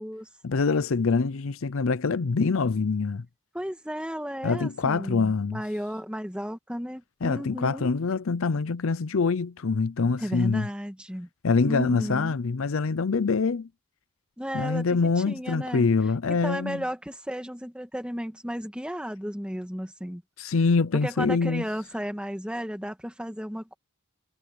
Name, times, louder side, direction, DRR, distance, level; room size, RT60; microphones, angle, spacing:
voice 1, 0.4-3.2 4.4-5.6 7.2-10.7 11.4-13.7 14.5-16.8 20.4-21.6, left 4 dB, 65° left, 0.6 m, -25 dB
voice 2, 3.5-7.9 10.2-11.3 11.7-12.4 14.4-15.0 15.3-15.9 16.3-20.2 20.9-23.7, equal, 5° right, 2.2 m, -34 dB
head